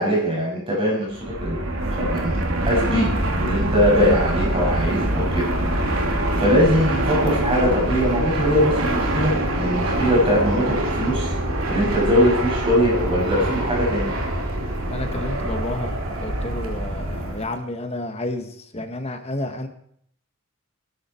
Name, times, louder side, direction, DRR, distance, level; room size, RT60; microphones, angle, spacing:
voice 1, 0.0-1.6 1.9-2.4 2.7-3.1 3.4-5.4 6.4-11.3 11.7-14.1, equal, 25° right, -4 dB, 6.9 m, -21 dB
Fixed-wing aircraft airplane, 1.1-17.5, right 1 dB, 75° right, 2.9 m, -24 dB
voice 2, 14.9-19.7, left 1 dB, 30° left, 6 dB, 1.7 m, -31 dB
18.5 x 13.0 x 4.7 m, 0.65 s
head